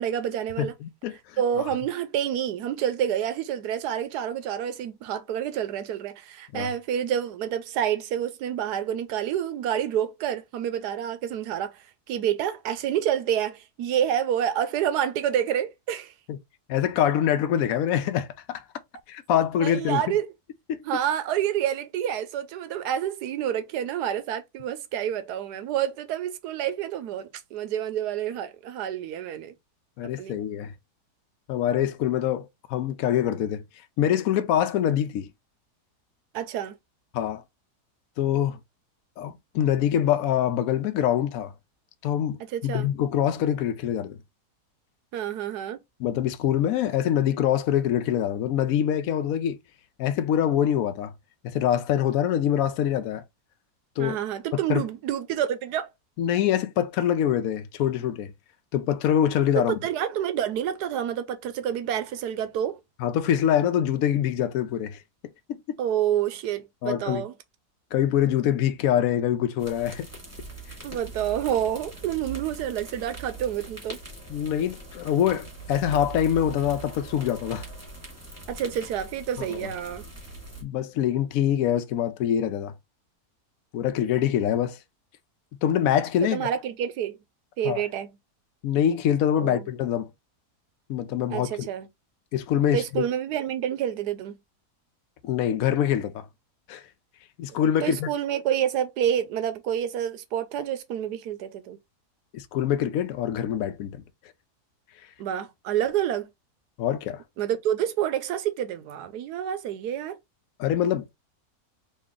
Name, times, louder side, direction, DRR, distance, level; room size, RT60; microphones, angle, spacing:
voice 1, 0.0-0.7 1.4-16.1 19.6-20.3 20.8-29.5 30.0-30.4 36.3-36.7 42.5-42.9 45.1-45.8 54.0-55.9 59.6-62.8 65.8-67.3 70.8-74.0 78.5-80.0 86.2-87.2 87.6-88.1 89.4-89.6 91.3-91.9 92.7-94.4 97.8-101.8 105.2-106.3 107.4-110.2, right 10 dB, 85° right, 1.2 m, -28 dB
voice 2, 0.6-1.7 6.5-6.7 16.3-16.4 16.7-18.6 19.1-20.0 20.7-20.8 30.0-30.7 31.5-33.6 34.0-35.3 37.1-37.4 38.2-38.6 39.2-41.5 42.0-44.2 46.0-49.6 50.0-51.1 51.4-53.2 54.0-54.2 54.5-54.8 56.2-58.3 58.7-59.8 63.0-65.0 65.7-65.8 66.8-67.2 67.9-70.1 74.3-77.6 79.4-79.7 80.6-82.7 83.7-84.8 85.6-86.5 87.6-87.8 88.6-90.1 90.9-91.7 92.3-93.0 95.2-96.2 96.7-96.8 97.4-98.1 102.3-104.0 106.8-107.2 110.6-111.2, left 10 dB, 70° left, 1.0 m, -25 dB
sound 1, 69.6-80.6, right 3 dB, 10° right, 1.9 m, -41 dB
4.2 x 2.6 x 3.6 m
omnidirectional pair, 1.7 m